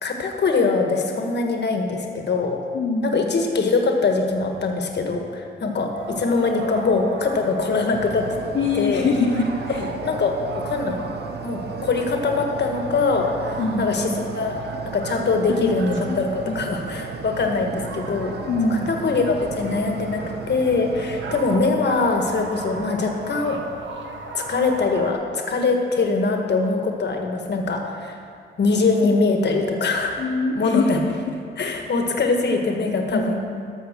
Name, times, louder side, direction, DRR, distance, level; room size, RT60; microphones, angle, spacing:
voice 1, 0.0-2.6 3.0-8.3 8.7-9.1 9.7-11.0 11.4-18.3 18.7-23.6 24.3-28.2 28.6-30.2 30.5-31.0 31.6-33.4, left 4 dB, 65° left, 3 dB, 1.3 m, -23 dB
voice 2, 2.7-3.1 8.5-9.8 13.6-14.2 15.5-15.8 16.1-16.2 16.5-16.6 18.5-18.9 30.2-31.1 33.1-33.7, left 3 dB, 80° left, -2 dB, 1.2 m, -24 dB
sound 1, 5.9-25.1, right 3 dB, 80° right, 1.2 m, -36 dB
sound 2, 7.9-21.6, right 7 dB, 60° right, 0.7 m, -36 dB
13.0 x 5.6 x 6.6 m, 2.2 s
wide cardioid pair, 100°, 19 cm